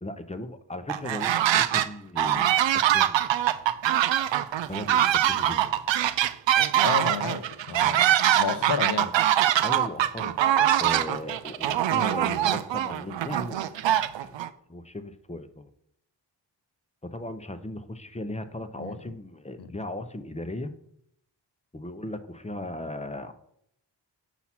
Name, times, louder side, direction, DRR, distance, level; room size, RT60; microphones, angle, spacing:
voice 1, 0.0-3.3 4.6-5.7 9.6-13.9 14.2-14.4 14.7-15.7 17.0-20.7 21.7-23.3, left 1 dB, 15° left, 9 dB, 0.7 m, -37 dB
sound 1, 0.9-1.9 2.2-14.5, right 11 dB, 65° right, 0.5 m, -23 dB
voice 2, 6.8-9.1 18.8-19.0 19.6-19.7, left 6 dB, 55° left, 11 dB, 0.8 m, -31 dB
5.7 x 4.3 x 5.9 m, 0.72 s
cardioid pair, 40°, 48 cm